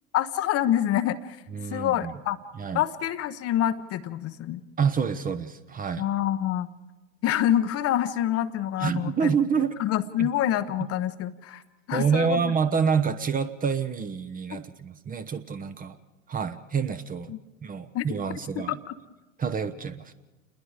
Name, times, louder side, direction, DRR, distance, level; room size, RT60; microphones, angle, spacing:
voice 1, 0.1-1.4 1.7-2.4 2.7-4.6 6.0-6.7 7.2-9.3 9.8-11.6 11.9-12.5 14.5-14.6 17.3-17.4 17.9-18.0 18.7-18.9, left 11 dB, 35° left, 11 dB, 1.0 m, -26 dB
voice 2, 1.5-2.1 2.6-2.8 4.8-6.0 8.8-9.7 10.2-10.3 11.9-16.0 16.3-17.3 17.6-18.8 19.4-20.1, right 6 dB, 20° right, 10 dB, 1.0 m, -27 dB
28.5 x 21.0 x 4.9 m, 1.1 s
hypercardioid pair, 95°, 41 cm